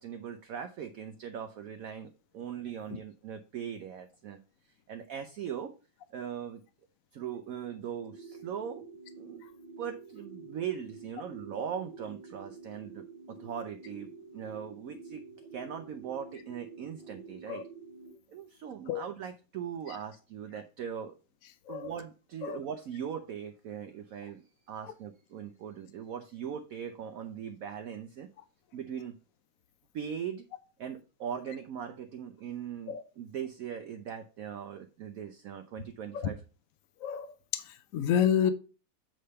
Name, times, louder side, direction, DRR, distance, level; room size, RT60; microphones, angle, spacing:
voice 1, 0.0-4.4 4.9-5.7 6.1-6.6 7.1-8.9 9.2-9.5 9.8-15.3 15.5-17.7 18.3-21.2 21.7-28.3 28.7-29.2 29.9-30.5 30.8-36.4, right 8 dB, 75° right, 0.7 m, -40 dB
sound 1, 8.0-18.1, right 4 dB, 25° right, 1.5 m, -49 dB
voice 2, 37.5-38.5, left 9 dB, 70° left, 0.8 m, -29 dB
7.6 x 3.4 x 5.5 m
omnidirectional pair, 2.1 m